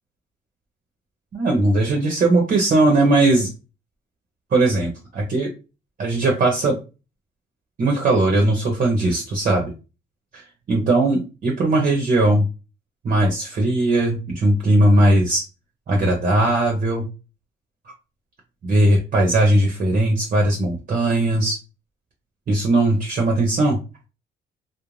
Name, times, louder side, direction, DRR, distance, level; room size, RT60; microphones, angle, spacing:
voice 1, 1.3-3.5 4.5-5.5 6.0-6.8 7.8-9.7 10.3-12.5 13.0-15.4 15.9-17.1 18.6-21.6 22.5-23.8, right 2 dB, 45° right, 0 dB, 0.7 m, -19 dB
2.4 x 2.1 x 3.1 m, 0.30 s
cardioid pair, 90°, 20 cm